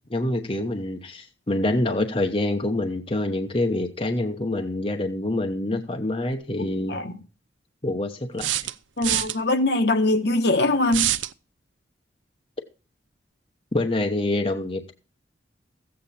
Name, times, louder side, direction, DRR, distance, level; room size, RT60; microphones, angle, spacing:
voice 1, 0.1-7.0 7.8-8.7 13.7-14.9, left 1 dB, 30° left, 1.0 m, -26 dB
sound 1, 6.3-6.4 8.4-9.4 10.9-11.3, right 12 dB, 90° right, 0.6 m, -25 dB
voice 2, 9.0-11.1, left 2 dB, 60° left, 1.3 m, -22 dB
14.5 x 8.7 x 4.3 m
head